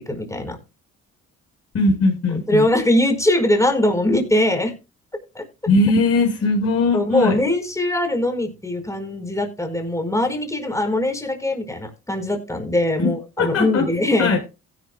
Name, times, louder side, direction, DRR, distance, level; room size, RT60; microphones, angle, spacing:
voice 1, 0.1-0.6 2.5-4.7 5.3-5.4 6.9-14.3, left 1 dB, 10° left, 6 dB, 4.4 m, -21 dB
voice 2, 1.7-2.7 5.7-7.4 13.0-13.1 13.4-13.9 14.2-14.4, left 3 dB, 55° left, 0 dB, 5.1 m, -19 dB
16.0 x 10.5 x 2.2 m, 0.29 s
cardioid pair, 90°, 30 cm